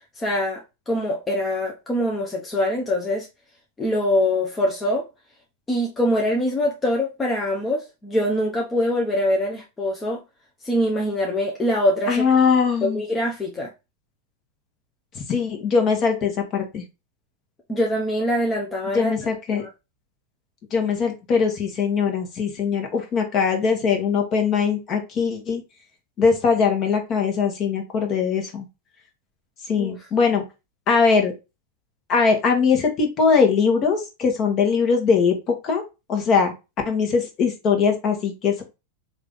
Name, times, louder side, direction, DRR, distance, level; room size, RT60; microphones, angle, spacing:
voice 1, 0.2-3.3 3.8-5.1 5.7-10.2 10.6-12.2 12.8-13.7 17.7-19.1 19.5-19.7 29.8-30.0, left 1 dB, 15° left, 0.7 m, -23 dB
voice 2, 12.1-13.0 15.1-16.8 18.9-19.6 20.7-25.6 26.2-28.6 29.7-30.4 30.9-31.3 32.1-35.8 36.1-36.5 36.8-38.6, left 5 dB, 40° left, 1.2 m, -21 dB
3.2 x 2.6 x 3.6 m
hypercardioid pair, 105°, 0 cm